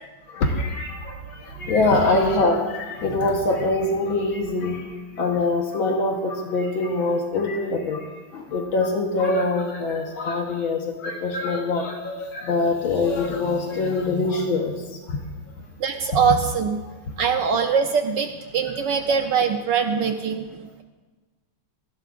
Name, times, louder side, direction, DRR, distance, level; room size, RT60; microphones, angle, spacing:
voice 1, 0.3-15.2 16.1-16.2, left 2 dB, 70° left, 1 dB, 1.9 m, -24 dB
voice 2, 15.8-16.8 17.2-20.8, right 6 dB, 70° right, 6 dB, 1.2 m, -23 dB
18.5 x 15.0 x 2.5 m, 1.3 s
omnidirectional pair, 2.4 m